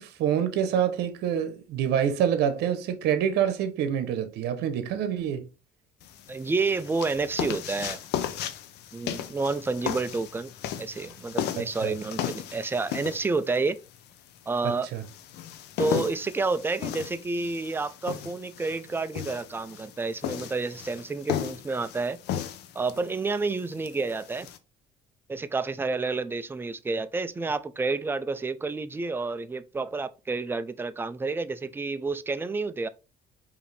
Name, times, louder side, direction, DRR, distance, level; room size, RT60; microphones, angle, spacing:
voice 1, 0.0-5.5 11.6-11.9 14.6-15.0, right 9 dB, 80° right, 0.8 m, -27 dB
sound 1, 6.0-24.6, left 10 dB, 80° left, 0.6 m, -36 dB
voice 2, 6.3-8.0 8.9-10.5 10.8-13.8 14.5-14.9 15.8-22.2 22.8-24.5 25.3-32.9, right 3 dB, 15° right, 0.4 m, -29 dB
4.9 x 2.7 x 3.3 m
cardioid pair, 110°, 17 cm